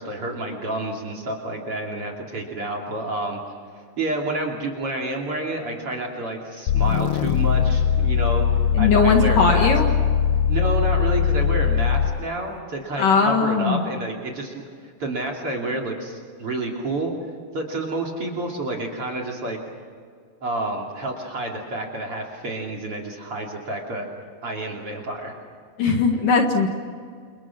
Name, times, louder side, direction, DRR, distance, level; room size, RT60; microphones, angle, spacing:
voice 1, 0.0-3.4 4.0-8.4 8.8-9.7 10.5-14.6 15.0-17.1 17.5-19.6 20.4-24.1 24.4-25.3, right 2 dB, 35° right, 3 dB, 3.2 m, -29 dB
sound 1, 6.7-12.3, left 8 dB, 75° left, 2.4 m, -20 dB
voice 2, 8.7-9.9 13.0-13.8 25.8-26.7, left 4 dB, 55° left, 3 dB, 3.0 m, -19 dB
30.0 x 28.5 x 6.1 m, 2.1 s
omnidirectional pair, 5.1 m